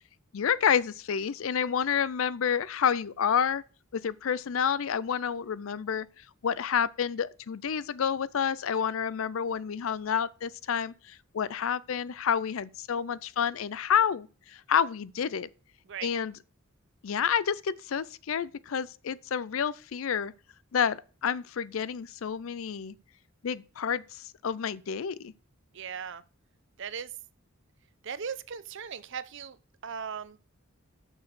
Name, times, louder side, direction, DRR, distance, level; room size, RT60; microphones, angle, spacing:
voice 1, 0.3-3.6 3.9-6.1 6.4-15.5 16.0-16.3 17.0-20.3 20.7-22.9 23.4-25.3, left 7 dB, 70° left, 0.4 m, -29 dB
voice 2, 25.7-26.2 26.8-27.1 28.0-29.6 29.8-30.4, right 7 dB, 60° right, 0.6 m, -38 dB
6.6 x 5.9 x 6.2 m
head